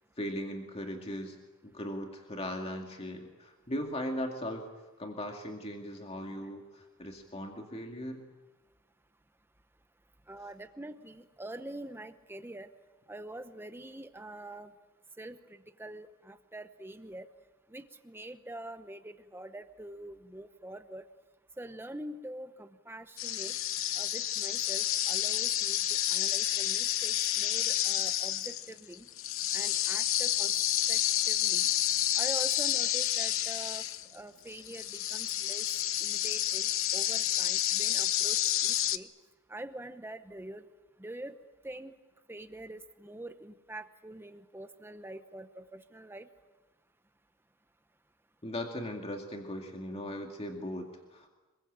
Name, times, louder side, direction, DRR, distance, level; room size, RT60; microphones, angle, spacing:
voice 1, 0.2-1.4 1.6-4.7 5.0-8.2 48.4-51.3, equal, 30° left, 3 dB, 2.3 m, -38 dB
voice 2, 10.3-12.7 13.1-14.7 15.2-17.3 17.7-21.1 21.6-23.6 23.9-25.8 26.1-29.1 29.5-30.5 30.9-31.0 31.3-31.7 32.1-33.8 34.1-35.7 36.0-39.1 39.5-40.6 41.0-41.4 41.6-41.9 42.3-46.3, right 1 dB, 10° right, 9 dB, 0.9 m, -45 dB
sound 1, 23.2-34.2 34.5-39.0, left 12 dB, 65° left, 1.0 m, -30 dB
27.0 x 22.5 x 8.8 m, 1.2 s
head